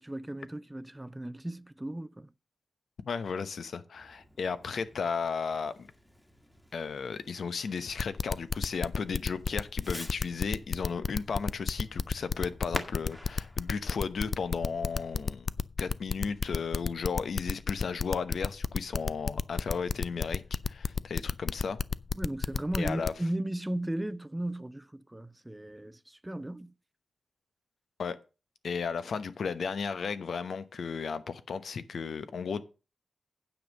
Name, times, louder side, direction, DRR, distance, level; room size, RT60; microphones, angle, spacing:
voice 1, 0.0-2.3 22.2-26.7, right 1 dB, 15° right, 0.5 m, -36 dB
voice 2, 3.1-5.7 6.7-15.5 15.8-21.8 22.8-23.1 28.0-28.2 28.6-32.6, left 5 dB, 80° left, 0.9 m, -34 dB
Fireworks, 3.9-15.3, equal, 10° left, 1.5 m, -48 dB
sound 1, 8.0-23.1, left 5 dB, 55° left, 0.4 m, -30 dB
9.1 x 5.3 x 6.5 m
wide cardioid pair, 85°, 0 cm